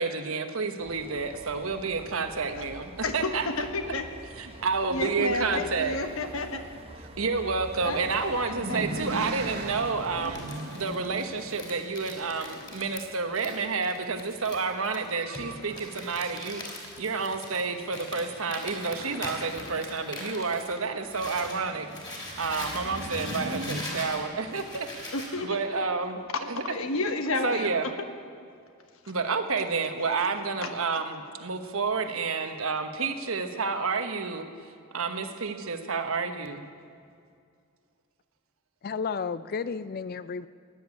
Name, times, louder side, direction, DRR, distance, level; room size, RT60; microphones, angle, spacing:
voice 1, 0.0-3.5 4.4-5.9 7.2-10.5 10.7-25.1 25.4-26.7 27.4-27.8 29.1-34.5 34.9-36.6, right 4 dB, 70° right, 7 dB, 1.2 m, -30 dB
sound 1, 0.8-10.5, right 1 dB, 25° right, 0.9 m, -46 dB
voice 2, 3.0-4.1 4.4-4.6 4.9-6.6 7.8-8.0 8.5-8.9 9.1-9.2 25.1-25.6 26.7-27.9 30.6-31.0, left 2 dB, 70° left, 7 dB, 1.3 m, -31 dB
sound 2, 7.6-13.7 14.7-15.2 15.5-15.6 15.9-16.0 21.0-25.4, right 1 dB, 50° right, 1.6 m, -39 dB
Crumpling crinkling, 10.0-21.6 21.9-25.3, left 1 dB, 20° left, 3.3 m, -41 dB
voice 3, 38.8-40.5, left 5 dB, 45° left, 15 dB, 0.4 m, -32 dB
16.0 x 10.5 x 8.4 m, 2.3 s
head